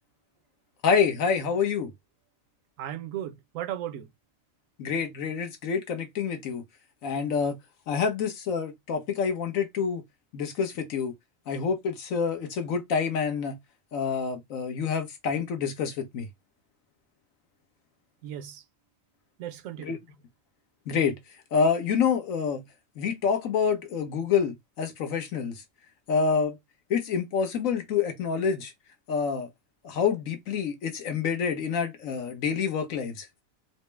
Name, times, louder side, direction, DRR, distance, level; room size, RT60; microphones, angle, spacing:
voice 1, 0.8-1.9 4.8-6.6 7.0-7.6 7.9-10.0 10.3-11.1 11.5-13.6 13.9-16.3 19.8-20.0 20.9-21.2 21.5-22.6 23.0-25.6 26.1-26.6 26.9-28.7 29.1-29.5 29.8-33.4, left 6 dB, 80° left, 1.3 m, -27 dB
voice 2, 2.8-4.1 18.2-18.6 19.4-20.0, right 11 dB, 75° right, 1.0 m, -36 dB
4.2 x 2.0 x 3.3 m
omnidirectional pair, 1.4 m